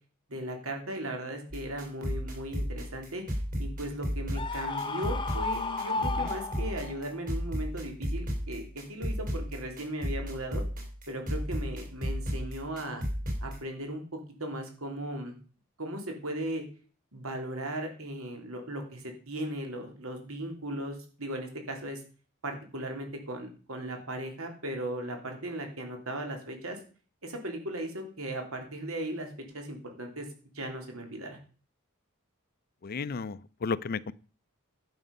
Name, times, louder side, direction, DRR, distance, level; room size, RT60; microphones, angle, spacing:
voice 1, 0.3-10.6 11.1-13.1 13.4-15.4 15.8-16.6 17.1-22.0 22.4-26.8 27.2-30.3 30.5-31.4, right 1 dB, 85° right, 3.3 m, -37 dB
sound 1, 1.5-13.6, equal, 40° right, 3.8 m, -34 dB
Screaming, 4.3-7.0, left 3 dB, 25° left, 0.9 m, -33 dB
voice 2, 32.8-34.1, left 4 dB, 45° left, 0.5 m, -33 dB
11.0 x 8.0 x 5.4 m
head